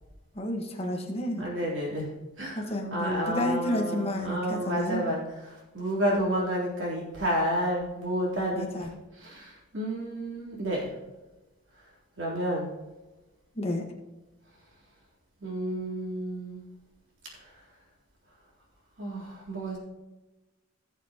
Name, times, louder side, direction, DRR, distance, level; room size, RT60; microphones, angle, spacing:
voice 1, 0.3-1.4 2.5-5.0 8.5-8.9 13.5-13.8, left 1 dB, 30° left, 1 dB, 1.5 m, -30 dB
voice 2, 1.4-2.1 2.4-8.7 9.2-10.9 12.2-12.7 15.4-16.6 17.4-17.5 19.0-19.8, equal, 65° right, -4 dB, 3.7 m, -30 dB
17.0 x 6.9 x 3.0 m, 1.1 s
head